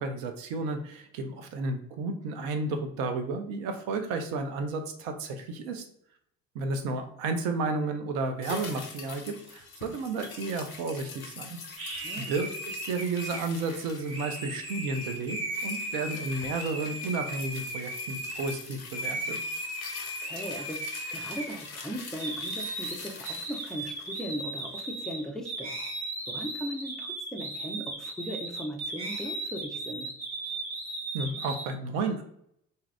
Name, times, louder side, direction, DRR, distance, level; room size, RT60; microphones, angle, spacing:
voice 1, 0.0-5.8 6.5-11.6 12.2-19.4 31.1-32.2, right 3 dB, 50° right, 7 dB, 0.6 m, -32 dB
sound 1, 8.4-24.9 25.2-25.3, left 4 dB, 80° left, 0.6 m, -44 dB
sound 2, 11.8-18.6 18.9-21.8 22.2-31.6, right 1 dB, 35° right, 1.0 m, -36 dB
voice 2, 20.2-25.7 26.3-30.1, equal, ahead, 1 dB, 0.4 m, -38 dB
2.7 x 2.3 x 3.2 m, 0.69 s
figure-of-eight pair, 55°, 41 cm